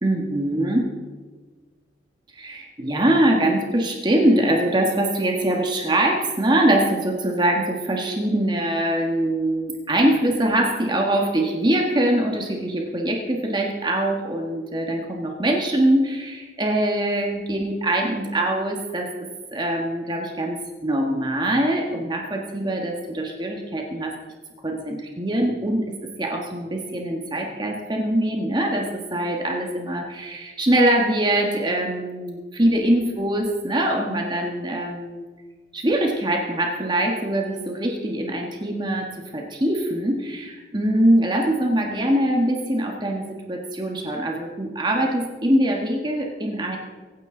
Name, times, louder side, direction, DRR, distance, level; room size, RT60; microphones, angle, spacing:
voice 1, 0.0-0.9 2.3-24.1 24.6-35.2 35.7-39.1 39.3-46.8, right 1 dB, 25° right, 1 dB, 1.5 m, -23 dB
24.0 x 9.4 x 3.8 m, 1.4 s
head